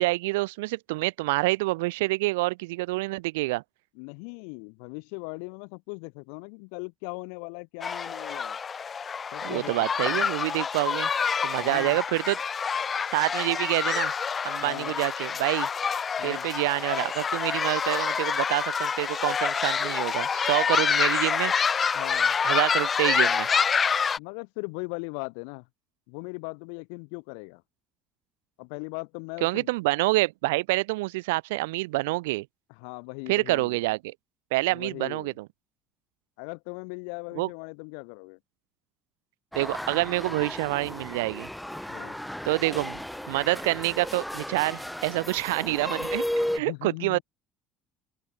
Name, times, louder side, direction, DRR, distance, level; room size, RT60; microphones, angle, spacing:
voice 1, 0.0-3.6 9.4-11.1 11.4-12.4 13.1-14.1 14.4-15.7 16.2-21.5 22.4-23.9 29.4-32.5 33.3-34.1 34.5-35.5 37.4-37.5 39.6-41.5 42.4-43.0 43.3-46.2 46.5-47.2, right 22 dB, 85° right, 0.8 m, -27 dB
voice 2, 3.9-8.6 9.3-10.2 11.6-12.0 14.6-14.9 16.2-16.4 21.9-22.4 24.2-25.7 26.1-27.6 28.6-29.7 32.8-33.8 34.7-35.3 36.4-38.4 41.9-42.2 46.6-47.2, left 40 dB or more, 80° left, 7.9 m, -39 dB
sound 1, 7.8-24.2, left 6 dB, 35° left, 2.1 m, -27 dB
sound 2, 39.5-46.6, left 1 dB, 5° left, 0.9 m, -34 dB
open air
hypercardioid pair, 70°, 0 cm